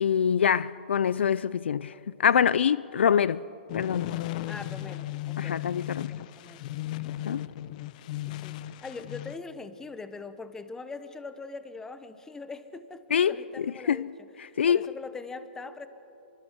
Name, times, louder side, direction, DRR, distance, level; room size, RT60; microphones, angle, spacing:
voice 1, 0.0-1.9 2.2-3.4 3.7-4.2 5.4-6.1 7.3-7.5 13.1-13.4 13.6-14.1 14.4-14.9, left 8 dB, 80° left, 0.4 m, -25 dB
sound 1, 3.7-9.4, left 15 dB, 45° left, 0.7 m, -36 dB
voice 2, 4.5-5.6 6.4-6.6 8.2-14.1 14.4-15.9, left 4 dB, 10° left, 1.0 m, -42 dB
29.5 x 24.5 x 4.6 m
hypercardioid pair, 140°, 6 cm